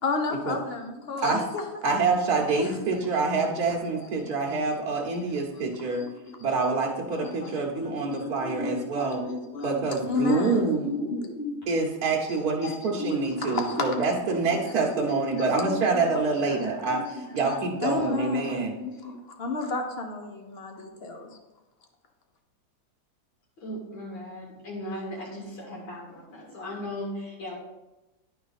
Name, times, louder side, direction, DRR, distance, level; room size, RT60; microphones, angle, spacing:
voice 1, 0.0-1.6 2.5-2.7 4.2-4.3 5.0-5.1 6.0-6.6 7.1-11.6 12.3-14.6 14.9-17.1 17.5-21.4, left 3 dB, 45° left, 4 dB, 0.8 m, -33 dB
voice 2, 1.8-6.1 6.4-9.2 9.6-10.9 11.7-18.8, right 4 dB, 55° right, -2 dB, 1.3 m, -26 dB
voice 3, 23.6-27.6, left 1 dB, 85° left, -4 dB, 2.8 m, -37 dB
11.0 x 4.8 x 4.1 m, 1.0 s
omnidirectional pair, 2.1 m